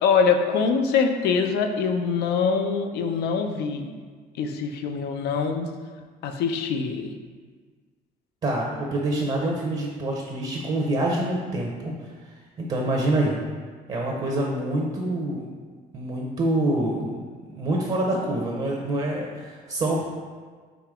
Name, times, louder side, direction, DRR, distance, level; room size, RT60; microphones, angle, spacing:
voice 1, 0.0-3.9 4.3-5.7 6.2-7.1, left 5 dB, 75° left, 5 dB, 0.5 m, -24 dB
voice 2, 8.4-11.9 12.6-13.4 13.9-15.5 15.9-17.1 17.5-20.1, right 1 dB, 35° right, -2 dB, 0.7 m, -26 dB
5.0 x 2.9 x 3.6 m, 1.5 s
cardioid pair, 110°, 17 cm